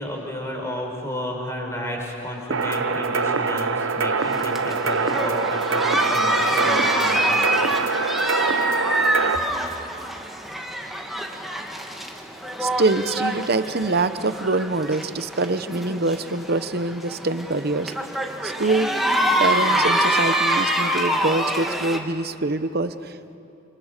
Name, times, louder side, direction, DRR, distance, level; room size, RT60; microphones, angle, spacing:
voice 1, 0.0-7.5, equal, 15° left, 0 dB, 5.1 m, -32 dB
sound 1, 2.5-9.4, right 4 dB, 80° right, 0.9 m, -24 dB
sound 2, 4.2-22.0, right 1 dB, ahead, 1.8 m, -25 dB
voice 2, 12.6-17.9 18.4-18.9 19.4-23.4, right 3 dB, 50° right, 12 dB, 0.9 m, -24 dB
28.0 x 27.5 x 6.7 m, 2.7 s
head